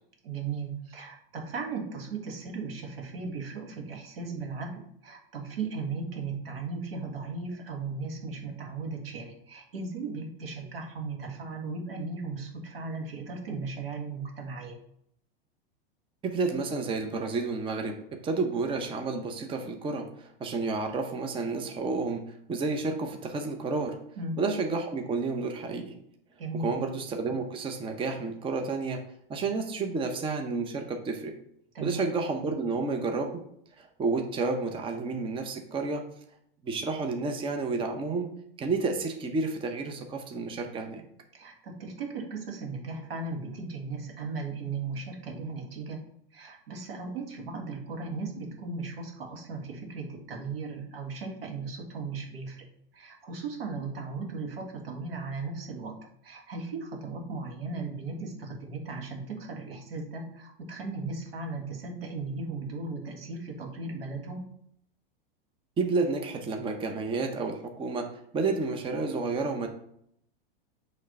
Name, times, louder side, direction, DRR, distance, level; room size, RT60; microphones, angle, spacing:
voice 1, 0.2-14.8 24.2-24.3 26.4-26.7 31.7-32.1 41.3-46.0 46.3-52.7 52.9-56.0 56.2-64.4, right 4 dB, 85° right, 2 dB, 1.7 m, -37 dB
voice 2, 16.2-17.9 18.2-22.2 22.5-24.0 24.4-25.9 26.6-29.0 29.3-31.3 31.8-33.4 33.8-36.0 36.6-38.3 38.6-41.0 65.8-69.7, right 3 dB, 20° right, 4 dB, 0.7 m, -30 dB
6.4 x 3.3 x 5.2 m, 0.70 s
hypercardioid pair, 120°, 29 cm